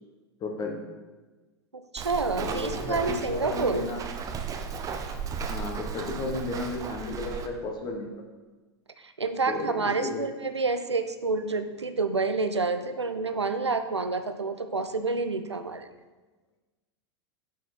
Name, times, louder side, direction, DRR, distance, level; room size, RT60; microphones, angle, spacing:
voice 1, 0.4-0.8 2.4-4.0 5.5-8.1 9.5-9.7 10.0-10.2, left 3 dB, 30° left, 2 dB, 1.3 m, -33 dB
voice 2, 1.7-3.9 9.0-15.9, right 3 dB, 90° right, 9 dB, 0.5 m, -28 dB
Walk footsteps, 2.0-7.5, right 6 dB, 25° right, 0.7 m, -35 dB
6.6 x 6.3 x 4.3 m, 1.2 s
figure-of-eight pair, 90°, 14 cm